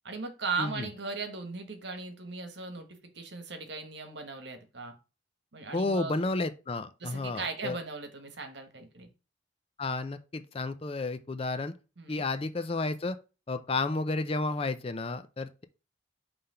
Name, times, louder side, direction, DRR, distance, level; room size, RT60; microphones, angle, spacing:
voice 1, 0.0-4.9 5.5-6.3 7.0-9.1 12.0-12.2, right 4 dB, 60° right, 1.3 m, -38 dB
voice 2, 5.7-7.8 9.8-11.7 12.1-13.2 13.5-15.6, left 3 dB, 30° left, 0.5 m, -32 dB
5.7 x 3.4 x 5.5 m
head